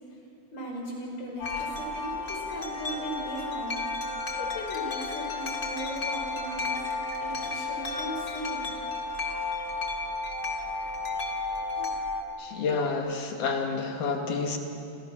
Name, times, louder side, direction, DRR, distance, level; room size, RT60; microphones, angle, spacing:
voice 1, 0.5-3.8 4.1-6.8 7.2-8.7, right 1 dB, 60° left, -1 dB, 7.2 m, -38 dB
Wind chime, 1.4-12.2, left 3 dB, 30° left, 2.6 m, -33 dB
voice 2, 12.4-14.6, left 4 dB, 90° left, 2 dB, 3.8 m, -29 dB
30.0 x 26.5 x 6.2 m, 2.9 s
omnidirectional pair, 3.5 m